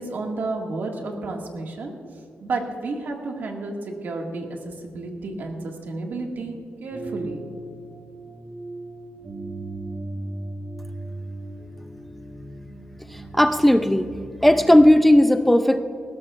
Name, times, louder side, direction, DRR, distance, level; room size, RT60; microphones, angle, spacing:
voice 1, 0.0-1.9 2.4-7.4, right 3 dB, 65° right, 1 dB, 1.9 m, -31 dB
sound 1, 6.9-14.9, right 2 dB, 30° right, 1.4 m, -37 dB
voice 2, 13.1-14.1 14.4-15.8, left 1 dB, 5° left, 8 dB, 0.4 m, -16 dB
20.5 x 17.0 x 2.5 m, 2.4 s
wide cardioid pair, 165°, 4 cm